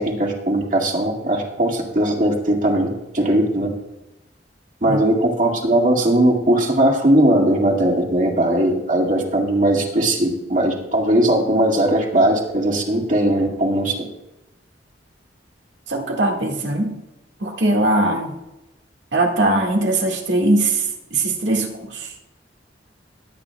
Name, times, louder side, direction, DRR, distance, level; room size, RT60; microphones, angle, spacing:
voice 1, 0.0-2.9 3.1-3.7 4.8-13.9, right 1 dB, 45° right, 0 dB, 2.1 m, -19 dB
voice 2, 15.9-16.9 17.4-18.4 19.1-22.1, right 2 dB, 85° right, 0 dB, 1.9 m, -20 dB
20.5 x 9.1 x 2.3 m, 0.94 s
head